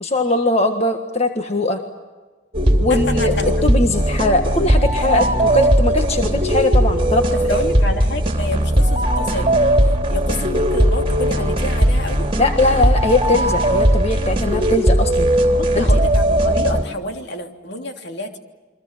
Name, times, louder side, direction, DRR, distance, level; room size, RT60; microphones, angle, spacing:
voice 1, 0.0-1.8 2.8-3.3 3.6-7.6 12.4-15.3 15.7-15.9, left 2 dB, 35° left, 5 dB, 1.6 m, -20 dB
sound 1, 2.5-16.8, equal, 30° right, 3.3 m, -18 dB
voice 2, 2.9-3.5 5.9-6.1 7.3-12.3 15.5-18.4, left 1 dB, 65° left, 4 dB, 3.2 m, -28 dB
29.0 x 23.5 x 7.6 m, 1.3 s
head